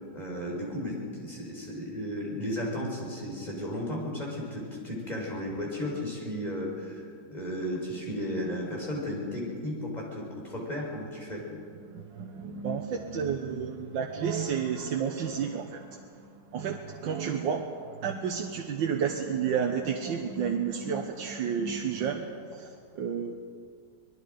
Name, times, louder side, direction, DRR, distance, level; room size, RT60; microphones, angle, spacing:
voice 1, 0.1-11.5, left 1 dB, 20° left, -3 dB, 5.1 m, -34 dB
voice 2, 11.9-23.3, right 7 dB, 90° right, 2 dB, 1.8 m, -31 dB
25.0 x 20.5 x 5.2 m, 2.2 s
omnidirectional pair, 2.0 m